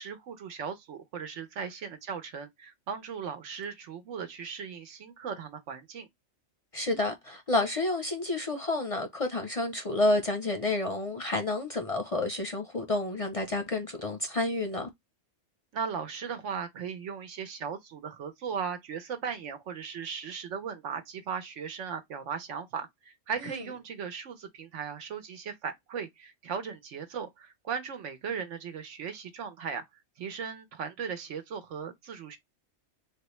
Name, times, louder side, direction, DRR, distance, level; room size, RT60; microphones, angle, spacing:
voice 1, 0.0-6.1 15.7-29.8 30.2-32.4, right 6 dB, 85° right, 1.1 m, -37 dB
voice 2, 6.7-14.9 23.4-23.6, left 2 dB, 40° left, 0.5 m, -30 dB
3.5 x 2.3 x 3.0 m
omnidirectional pair, 1.2 m